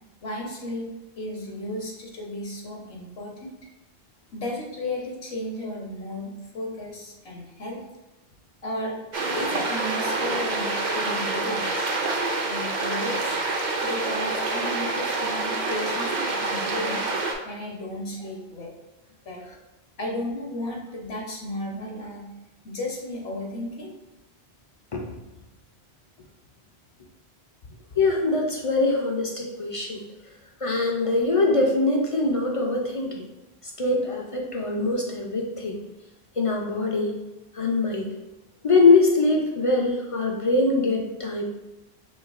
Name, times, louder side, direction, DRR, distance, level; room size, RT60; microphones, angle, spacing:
voice 1, 0.2-0.9 1.2-3.5 4.3-7.8 8.6-9.0 9.3-11.9 12.4-13.4 13.8-17.0 17.4-18.7 19.3-19.4 20.0-22.3 22.6-23.9, left 1 dB, 75° left, -2 dB, 1.2 m, -34 dB
sound 1, 9.1-17.3, right 3 dB, 50° right, 0.7 m, -27 dB
voice 2, 28.0-30.0 30.6-33.2 33.8-35.8 36.4-37.1 37.5-38.1 38.6-41.4, left 3 dB, 45° left, 0 dB, 0.4 m, -23 dB
5.0 x 3.3 x 2.4 m, 1.0 s
omnidirectional pair, 1.1 m